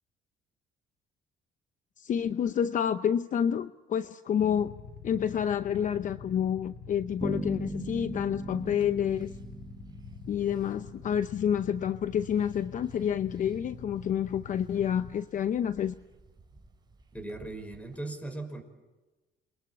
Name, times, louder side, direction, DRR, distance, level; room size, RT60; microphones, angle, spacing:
voice 1, 2.0-4.8 5.0-9.3 10.3-15.9, left 8 dB, 50° left, 12 dB, 0.8 m, -29 dB
Motorcycle / Idling, 4.4-15.1, left 4 dB, 85° left, 4.8 m, -46 dB
Bass guitar, 7.2-11.0, right 2 dB, 10° right, 1.3 m, -38 dB
sound 1, 8.6-18.0, right 3 dB, 25° right, 4.5 m, -59 dB
voice 2, 17.1-18.6, right 2 dB, 10° left, 8 dB, 5.6 m, -38 dB
28.5 x 23.0 x 8.6 m, 1.1 s
cardioid pair, 110°, 17 cm